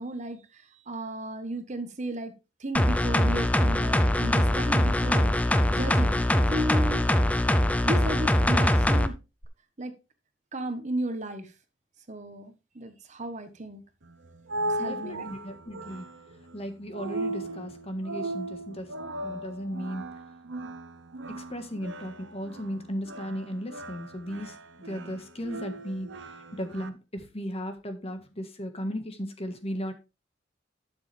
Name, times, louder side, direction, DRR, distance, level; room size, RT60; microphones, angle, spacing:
voice 1, 0.0-2.3 2.6-7.1 7.8-9.2 9.8-10.0 10.5-11.5 12.1-13.8 14.7-15.3, right 1 dB, 40° right, 1.2 m, -34 dB
sound 1, 2.7-9.1 9.4-9.5, left 1 dB, 5° left, 0.6 m, -23 dB
sound 2, 14.0-26.9, right 2 dB, 80° right, 1.0 m, -37 dB
voice 2, 14.8-16.0 16.5-18.9 19.2-20.1 21.3-24.6 24.8-26.1 26.5-29.9, equal, 30° left, 1.6 m, -36 dB
12.0 x 7.2 x 3.4 m
head